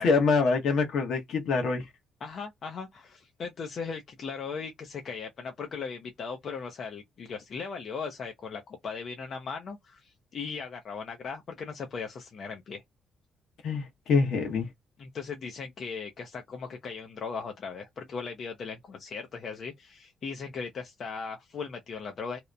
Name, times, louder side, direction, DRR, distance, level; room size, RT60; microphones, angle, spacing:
voice 1, 0.0-1.8 13.6-14.7, left 4 dB, 75° left, 1.0 m, -25 dB
voice 2, 2.2-12.8 15.0-22.4, left 5 dB, 55° left, 0.5 m, -38 dB
2.8 x 2.0 x 2.4 m
cardioid pair, 90°, 0 cm